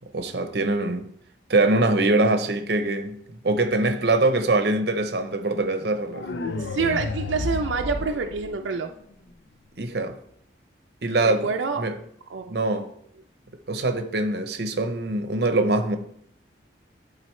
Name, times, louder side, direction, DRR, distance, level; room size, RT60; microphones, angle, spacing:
voice 1, 0.1-1.1 1.5-3.2 3.4-6.3 9.8-10.1 11.0-11.5 11.8-11.9 12.5-12.9 13.7-16.0, right 2 dB, 60° right, 0.7 m, -23 dB
sound 1, 6.1-9.1, left 3 dB, 70° left, 0.5 m, -31 dB
voice 2, 6.6-8.9 11.4-11.8 12.3-12.6, right 5 dB, 90° right, 0.4 m, -27 dB
11.0 x 4.0 x 3.2 m
head